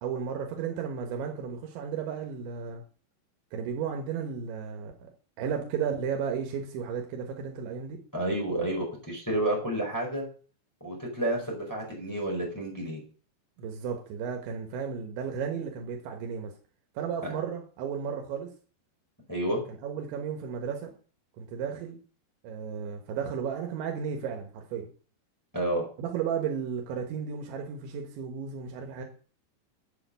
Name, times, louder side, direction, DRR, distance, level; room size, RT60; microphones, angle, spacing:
voice 1, 0.0-2.8 3.5-5.1 5.4-8.0 13.6-16.5 17.0-18.5 19.7-21.0 21.4-22.0 22.4-24.9 26.0-29.1, right 7 dB, 90° right, 3 dB, 3.7 m, -34 dB
voice 2, 8.1-10.3 10.8-13.0 17.2-17.3 19.3-19.6 25.5-25.9, right 1 dB, 5° left, -1 dB, 4.4 m, -30 dB
8.4 x 7.9 x 8.2 m, 0.40 s
omnidirectional pair, 5.1 m